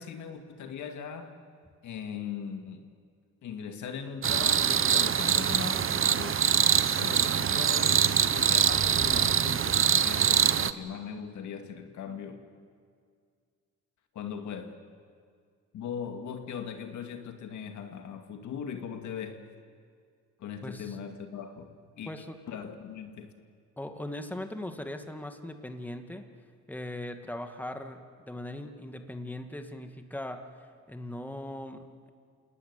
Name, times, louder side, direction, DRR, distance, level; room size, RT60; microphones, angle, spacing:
voice 1, 0.0-1.4 1.8-2.9 3.4-6.4 7.0-12.4 14.1-14.8 15.7-19.5 20.4-22.1 22.5-23.3, left 7 dB, 75° left, 2.2 m, -39 dB
sound 1, 4.2-10.7, right 8 dB, 45° right, 0.9 m, -24 dB
voice 2, 20.6-21.0 22.1-22.4 23.8-26.2 26.7-30.5 30.9-32.1, left 1 dB, 5° left, 2.1 m, -39 dB
28.0 x 18.5 x 9.7 m
cardioid pair, 90°, 30 cm